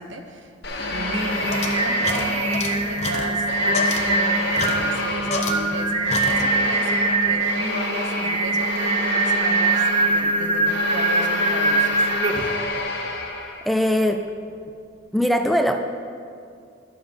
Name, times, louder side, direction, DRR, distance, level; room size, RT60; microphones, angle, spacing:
voice 1, 0.0-12.1, right 2 dB, 85° right, 5 dB, 1.0 m, -35 dB
sound 1, 0.6-3.1 3.5-13.8, left 2 dB, 65° left, 1.4 m, -30 dB
sound 2, 0.7-5.8 6.1-6.8, left 3 dB, 35° left, 0.8 m, -31 dB
Singing, 0.9-12.7, right 3 dB, 30° right, 0.7 m, -23 dB
voice 2, 13.4-14.3 15.1-15.8, equal, ahead, 5 dB, 0.4 m, -21 dB
11.0 x 7.1 x 5.2 m, 2.3 s
head